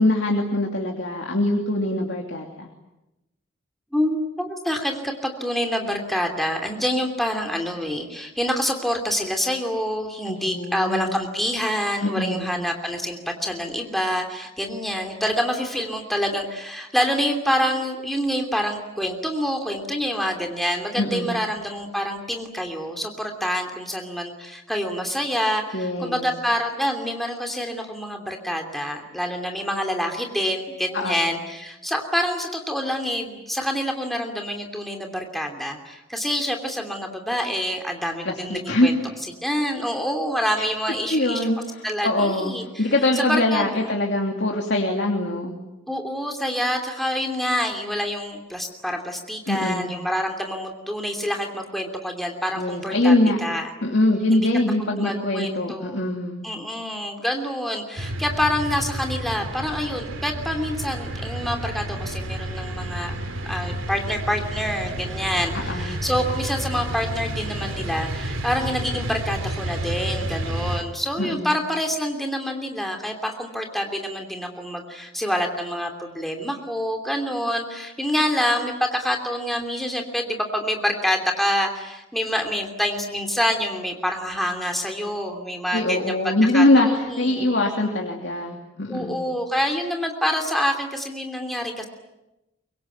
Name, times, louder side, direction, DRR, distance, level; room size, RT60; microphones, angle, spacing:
voice 1, 0.0-2.7 10.3-11.2 12.0-12.5 21.0-21.4 25.7-26.3 30.9-31.3 38.2-38.9 40.6-40.7 41.1-45.6 49.5-49.9 52.6-53.4 53.8-56.4 65.5-66.0 71.2-71.6 85.7-89.2, left 1 dB, 60° left, 1 dB, 2.9 m, -23 dB
voice 2, 3.9-39.0 39.4-41.4 41.8-43.9 45.9-53.1 53.4-53.7 54.3-54.5 54.9-56.0 56.4-63.2 63.4-87.5 88.9-91.8, equal, ahead, 2 dB, 2.8 m, -27 dB
sound 1, 58.0-70.8, right 1 dB, 90° right, 3.0 m, -30 dB
24.5 x 23.5 x 9.2 m, 0.96 s
head